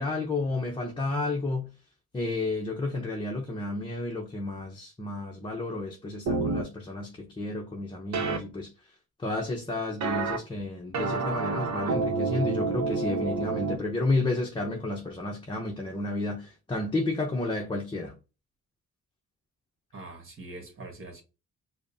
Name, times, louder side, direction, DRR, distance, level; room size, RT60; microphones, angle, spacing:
voice 1, 0.0-1.7 2.1-8.7 9.2-18.1, left 2 dB, 15° left, 0.7 m, -31 dB
sound 1, 6.3-6.6 8.1-8.4 10.0-10.4 10.9-13.8, right 4 dB, 65° right, 0.8 m, -28 dB
voice 2, 19.9-21.2, right 2 dB, 45° right, 1.5 m, -43 dB
5.0 x 2.1 x 2.7 m
cardioid pair, 90°, 30 cm